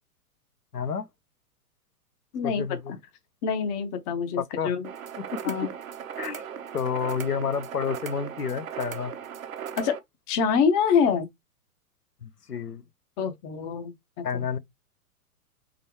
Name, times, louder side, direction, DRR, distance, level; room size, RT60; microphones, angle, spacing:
voice 1, 0.7-1.1 2.4-2.9 4.4-4.7 5.2-5.4 6.2-6.4 6.7-9.1 12.2-12.8 14.2-14.6, left 6 dB, 90° left, 0.7 m, -30 dB
voice 2, 2.3-3.0 3.4-4.9 5.4-5.7 9.8-9.9 10.3-11.3 13.2-13.9 14.2-14.4, left 6 dB, 15° left, 0.5 m, -25 dB
sound 1, 4.8-10.0, right 8 dB, 60° right, 1.0 m, -38 dB
4.1 x 3.8 x 3.1 m
figure-of-eight pair, 105°, 45 cm